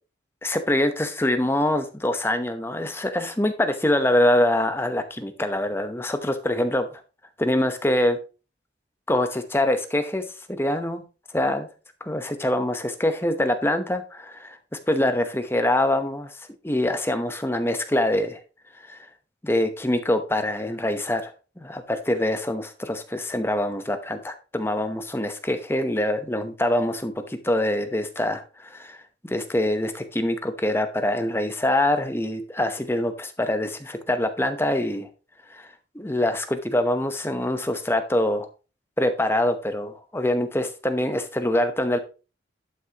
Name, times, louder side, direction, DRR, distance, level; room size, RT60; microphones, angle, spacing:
voice 1, 0.4-6.9 7.4-8.2 9.1-11.0 11.3-11.7 12.0-14.6 14.9-18.4 18.8-19.1 19.4-29.0 29.2-35.1 35.5-38.5 39.0-42.0, left 1 dB, 10° left, 0.8 m, -24 dB
11.5 x 6.1 x 2.9 m
head